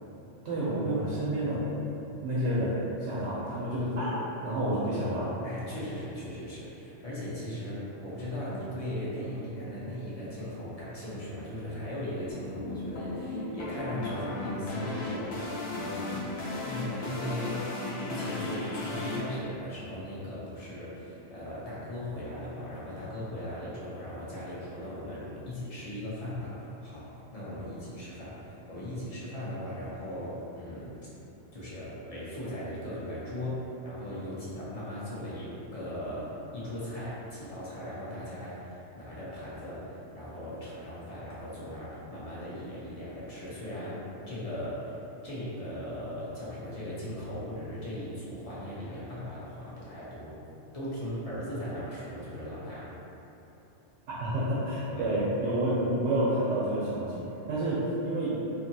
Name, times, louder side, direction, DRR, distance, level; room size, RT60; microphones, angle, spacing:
voice 1, 0.4-1.7 2.2-5.3 54.2-58.3, right 1 dB, 85° right, -9 dB, 0.9 m, -29 dB
voice 2, 5.4-16.2 16.6-17.7 18.0-31.0 31.5-45.0 45.2-50.4 50.7-52.9 54.9-55.1, equal, 40° left, -9 dB, 0.6 m, -38 dB
sound 1, 12.3-19.2, left 2 dB, 70° left, 0.9 m, -35 dB
2.7 x 2.6 x 2.6 m, 3.0 s
omnidirectional pair, 1.2 m